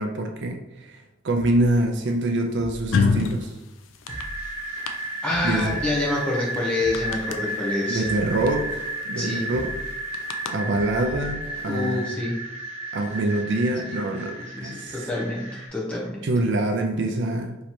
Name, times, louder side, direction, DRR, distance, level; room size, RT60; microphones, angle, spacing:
voice 1, 0.0-3.6 5.4-5.8 7.9-8.7 9.0-9.7 10.5-12.0 12.9-15.0 16.2-17.6, right 2 dB, 60° right, 3 dB, 0.4 m, -25 dB
sound 1, 1.4-2.1 2.6-3.5 3.9-4.9 5.3-6.2 6.7-7.6 8.0-8.9 9.4-10.3 10.7-11.6 12.1-12.2, equal, 45° left, 1.0 m, -40 dB
sound 2, 2.9-3.4 3.9-4.2 4.9-5.0 5.6-5.7 5.9-6.0 6.5-6.6 6.9-7.3 8.5-8.6 8.8-9.0 10.1-10.5, left 4 dB, 70° left, 0.4 m, -22 dB
sound 3, 4.1-15.7, right 1 dB, 30° right, 1.0 m, -33 dB
voice 2, 5.2-8.1 9.2-9.5 11.7-12.5 13.8-14.0 14.4-16.2, left 2 dB, 5° left, -5 dB, 0.8 m, -27 dB
3.1 x 2.9 x 4.2 m, 0.99 s
head